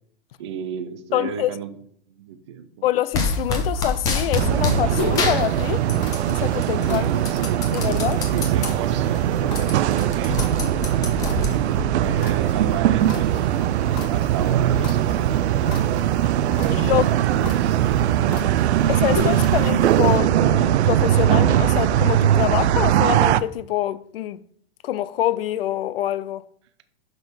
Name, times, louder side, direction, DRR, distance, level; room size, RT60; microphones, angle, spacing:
voice 1, 0.4-1.7 2.1-2.7 6.9-7.7 8.3-10.6 11.2-13.8 14.1-16.0 16.5-17.8 18.3-18.6, right 8 dB, 30° right, 0.4 m, -33 dB
voice 2, 1.1-1.5 2.8-5.9 6.3-7.1 7.7-8.2 16.8-17.1 18.9-24.4 24.8-26.4, left 13 dB, 65° left, 0.5 m, -25 dB
sound 1, 3.1-4.8 5.2-6.3 6.6-8.7 9.1-9.2 9.4-11.9, left 4 dB, 10° left, 0.6 m, -26 dB
sound 2, 3.3-20.2, left 4 dB, 40° left, 1.2 m, -36 dB
sound 3, 4.3-23.4, right 11 dB, 85° right, 0.5 m, -20 dB
6.0 x 5.3 x 5.9 m
supercardioid pair, 175°, 32 cm